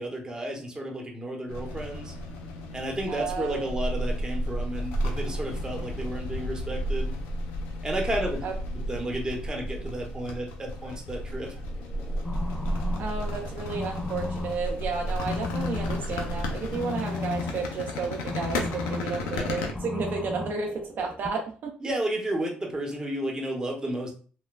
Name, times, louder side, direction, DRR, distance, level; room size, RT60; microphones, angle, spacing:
voice 1, 0.0-2.1 2.7-7.2 7.8-8.5 8.7-11.5 19.3-19.6 21.8-24.1, right 1 dB, 20° right, 1 dB, 0.9 m, -32 dB
sound 1, 1.5-19.7, equal, 90° left, 0.5 m, -33 dB
voice 2, 3.1-3.7 8.4-8.5 13.0-20.7 21.0-21.7, right 5 dB, 60° right, 2 dB, 0.5 m, -32 dB
sound 2, 11.7-21.3, left 3 dB, 10° left, 0.4 m, -36 dB
3.0 x 2.2 x 2.3 m, 0.39 s
supercardioid pair, 75°, 4 cm